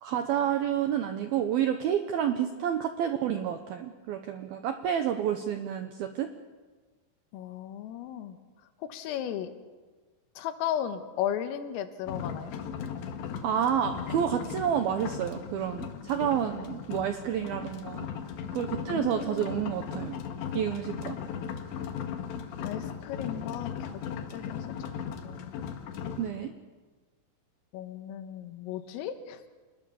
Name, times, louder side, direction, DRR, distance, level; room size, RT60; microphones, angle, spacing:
voice 1, 0.0-6.3 13.4-18.1 18.5-20.2 20.5-21.2 26.2-26.5, right 9 dB, 80° right, 7 dB, 2.2 m, -29 dB
voice 2, 7.3-8.4 8.8-9.5 10.4-12.5 18.9-19.6 19.9-20.0 22.6-24.0 24.3-24.9 25.2-25.5 27.7-29.4, left 10 dB, 85° left, 9 dB, 4.0 m, -35 dB
sound 1, 12.1-26.3, left 7 dB, 65° left, 3.7 m, -37 dB
27.5 x 20.5 x 7.1 m, 1.4 s
omnidirectional pair, 5.8 m